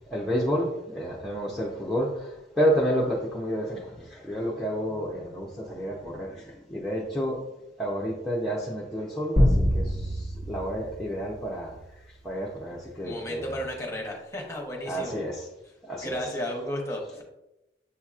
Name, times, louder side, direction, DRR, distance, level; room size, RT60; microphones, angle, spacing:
voice 1, 0.1-7.4 7.8-11.8 12.2-13.5 14.9-15.5 15.8-16.1, equal, ahead, -5 dB, 0.6 m, -30 dB
sound 1, 9.4-11.9, equal, 40° right, 1.4 m, -25 dB
voice 2, 13.0-15.2 16.0-17.2, equal, 15° left, 0 dB, 1.0 m, -33 dB
7.4 x 2.8 x 2.4 m, 0.93 s
head